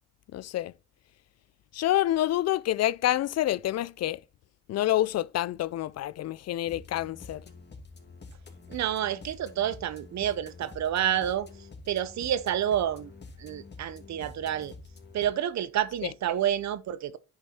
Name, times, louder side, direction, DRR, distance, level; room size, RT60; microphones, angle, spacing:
voice 1, 0.3-0.7 1.7-4.2 4.7-7.4, left 13 dB, 60° left, 0.5 m, -27 dB
sound 1, 6.6-15.3, left 3 dB, 35° left, 2.5 m, -47 dB
voice 2, 8.7-11.5 11.9-13.1 13.4-14.7 15.1-17.2, right 10 dB, 65° right, 0.9 m, -29 dB
9.8 x 5.4 x 4.4 m
cardioid pair, 90°, 30 cm